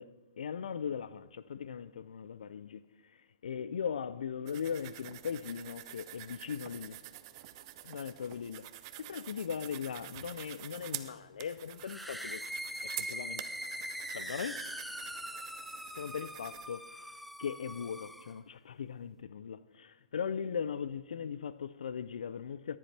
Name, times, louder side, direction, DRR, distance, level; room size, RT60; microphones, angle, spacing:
voice 1, 0.0-7.0 7.8-12.4 12.8-13.5 14.1-14.6 15.9-16.9 17.4-22.8, left 7 dB, 85° left, 0.4 m, -39 dB
sound 1, 4.5-16.7, right 14 dB, 40° right, 0.6 m, -47 dB
sound 2, 11.8-18.4, equal, ahead, 0.4 m, -42 dB
14.5 x 10.5 x 3.3 m
hypercardioid pair, 150°, 4 cm